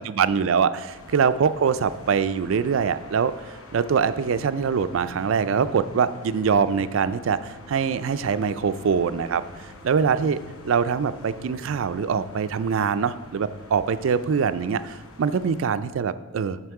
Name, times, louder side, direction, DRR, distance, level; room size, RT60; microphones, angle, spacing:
voice 1, 0.0-9.4 9.8-16.6, right 6 dB, 65° right, 13 dB, 0.4 m, -23 dB
sound 1, 0.9-15.7, left 1 dB, 75° left, 0.9 m, -45 dB
sound 2, 5.8-12.4, equal, 5° right, 2.8 m, -53 dB
7.9 x 6.0 x 4.8 m, 1.2 s
head